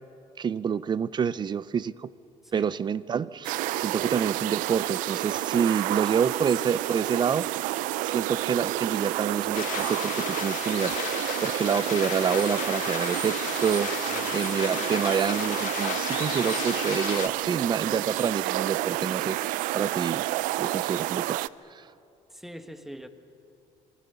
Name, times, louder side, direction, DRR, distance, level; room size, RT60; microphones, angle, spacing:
voice 1, 0.4-2.1 2.5-7.4 8.0-20.2 20.6-21.4 21.7-21.8, right 7 dB, 35° right, 18 dB, 0.6 m, -28 dB
sound 1, 3.4-21.5, right 17 dB, 90° right, 0.5 m, -30 dB
sound 2, 9.5-17.3, left 14 dB, 75° left, 0.8 m, -34 dB
voice 2, 22.4-23.1, equal, ahead, 8 dB, 1.5 m, -41 dB
27.5 x 23.0 x 6.9 m, 2.7 s
cardioid pair, 115°, 13 cm